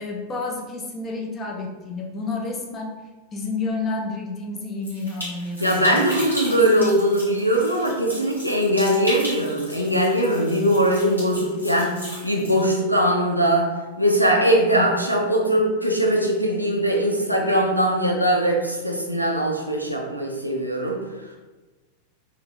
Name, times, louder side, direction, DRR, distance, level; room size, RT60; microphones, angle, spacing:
voice 1, 0.0-2.9 3.3-6.3 6.7-7.3 14.7-15.1, left 3 dB, 25° left, 0 dB, 0.7 m, -30 dB
sound 1, 4.8-12.7, equal, 85° left, 1.4 m, -36 dB
voice 2, 5.6-12.0 12.2-13.7 14.0-21.0, right 1 dB, 90° right, -1 dB, 0.6 m, -21 dB
3.8 x 2.5 x 3.2 m, 1.2 s
figure-of-eight pair, 90°, 0 cm